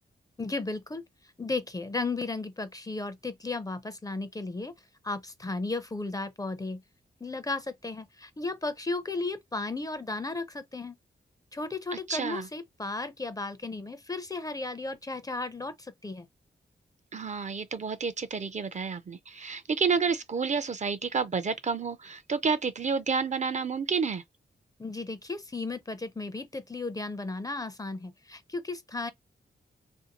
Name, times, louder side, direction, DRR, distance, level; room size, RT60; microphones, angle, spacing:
voice 1, 0.4-1.0 1.4-4.7 5.0-6.8 7.2-11.0 11.5-16.3 24.8-29.1, left 3 dB, 20° left, 0.4 m, -34 dB
voice 2, 12.1-12.5 17.1-24.2, right 5 dB, 40° right, 0.4 m, -30 dB
2.6 x 2.5 x 2.8 m
wide cardioid pair, 90°, 18 cm